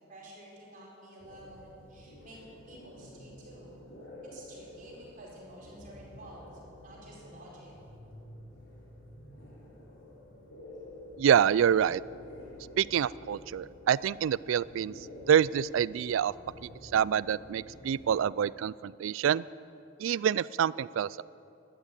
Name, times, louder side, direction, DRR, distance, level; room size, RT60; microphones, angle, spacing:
voice 1, 0.0-2.4 2.6-3.9 4.3-6.5 6.8-7.7, right 1 dB, 45° right, -5 dB, 4.4 m, -51 dB
sound 1, 1.2-18.1, left 1 dB, 70° left, 3.0 m, -50 dB
voice 2, 11.2-12.0 12.8-16.3 16.6-19.5 20.0-21.2, right 8 dB, 80° right, 21 dB, 0.3 m, -27 dB
12.5 x 12.5 x 8.3 m, 2.7 s
head